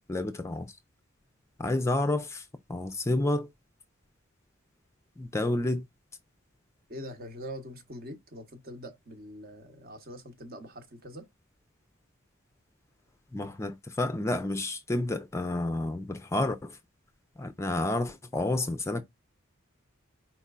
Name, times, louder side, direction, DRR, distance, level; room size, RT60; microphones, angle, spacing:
voice 1, 0.1-0.7 1.6-2.4 2.7-3.5 5.2-5.9 13.3-16.8 17.4-19.0, left 2 dB, 15° left, 0.4 m, -30 dB
voice 2, 6.9-11.2, equal, 45° right, 1.0 m, -43 dB
4.4 x 4.2 x 2.4 m
head